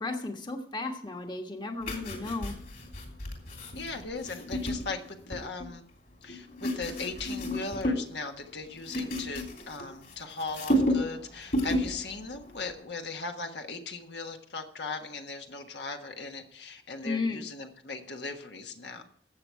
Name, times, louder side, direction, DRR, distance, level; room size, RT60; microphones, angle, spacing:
voice 1, 0.0-2.5 17.0-17.5, left 3 dB, 25° left, 4 dB, 1.3 m, -34 dB
sound 1, 1.8-5.7 6.3-8.1 8.4-10.1 10.4-11.2 11.5-12.0 12.3-12.5, equal, 50° left, 3.2 m, -32 dB
voice 2, 3.8-5.8 6.2-19.0, left 3 dB, 70° left, 4 dB, 1.4 m, -38 dB
14.0 x 8.3 x 4.6 m, 0.64 s
head